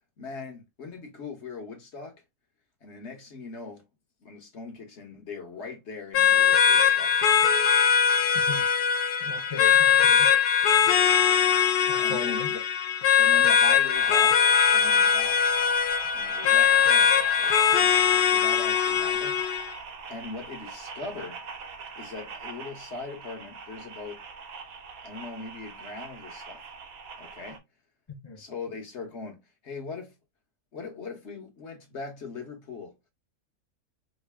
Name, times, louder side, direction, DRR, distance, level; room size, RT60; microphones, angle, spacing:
voice 1, 0.2-2.2 2.8-3.9 4.2-7.2 12.0-12.6 13.2-14.4 14.7-15.4 16.1-19.4 20.1-21.4 22.0-24.2 25.0-26.6 27.2-27.6 28.4-30.2 30.7-33.0, left 4 dB, 50° left, 1.3 m, -40 dB
sound 1, 6.1-19.7, left 7 dB, 80° left, 0.4 m, -21 dB
voice 2, 8.3-8.7 9.2-10.3 11.8-12.5 28.1-28.4, left 5 dB, 30° left, 0.5 m, -37 dB
sound 2, 13.9-27.6, right 5 dB, 70° right, 1.1 m, -42 dB
3.2 x 2.6 x 3.3 m
omnidirectional pair, 1.6 m